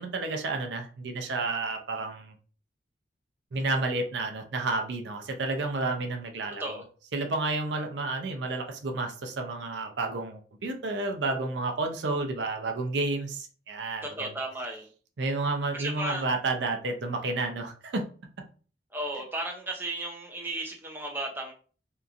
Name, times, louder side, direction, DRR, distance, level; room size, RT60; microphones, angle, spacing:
voice 1, 0.0-2.3 3.5-6.8 7.1-14.3 15.2-18.0, right 3 dB, 85° right, 4 dB, 0.5 m, -31 dB
voice 2, 14.0-14.8 15.7-16.2 18.9-21.5, right 1 dB, 10° right, 0 dB, 0.5 m, -34 dB
2.8 x 2.4 x 2.4 m, 0.39 s
head